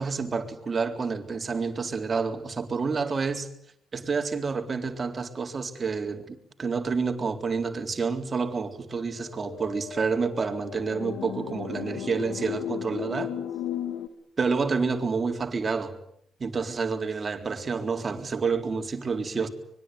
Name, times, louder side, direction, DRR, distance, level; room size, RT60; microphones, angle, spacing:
voice 1, 0.0-3.5 3.9-13.3 14.4-16.0 16.4-19.5, right 4 dB, 35° right, 3.9 m, -29 dB
sound 1, 9.2-14.1, left 10 dB, 85° left, 2.4 m, -35 dB
25.0 x 22.0 x 9.4 m
cardioid pair, 90°, 0 cm